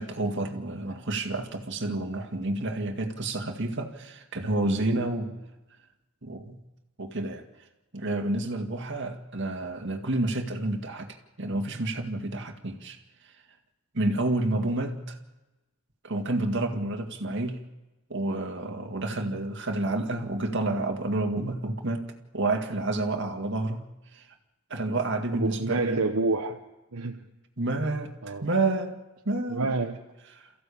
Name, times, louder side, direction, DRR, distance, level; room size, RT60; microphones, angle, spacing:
voice 1, 0.0-5.4 6.2-6.6 7.0-7.4 7.9-13.0 13.9-15.2 16.0-17.6 18.1-24.3 24.7-26.1 27.6-29.0 29.3-29.7 30.3-30.5, right 2 dB, 55° right, 4 dB, 2.1 m, -29 dB
voice 2, 25.3-26.6 26.9-27.2 28.2-28.5 29.5-30.0, right 3 dB, 75° right, 3 dB, 1.1 m, -28 dB
28.5 x 15.0 x 8.6 m, 1.1 s
head